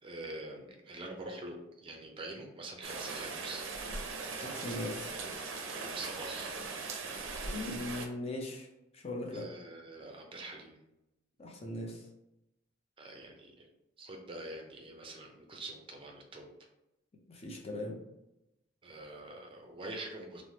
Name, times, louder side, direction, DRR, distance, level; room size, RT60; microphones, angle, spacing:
voice 1, 0.0-3.7 5.7-6.6 9.3-10.8 13.0-13.7 14.0-16.5 18.8-20.4, right 2 dB, 25° right, 1 dB, 0.5 m, -45 dB
Rain, 2.8-8.1, right 4 dB, 80° right, 0.4 m, -40 dB
voice 2, 4.4-5.1 7.4-8.7 8.9-9.4 11.4-12.1 17.3-18.0, left 1 dB, 30° left, 0 dB, 0.5 m, -39 dB
3.1 x 2.0 x 2.7 m, 0.91 s
head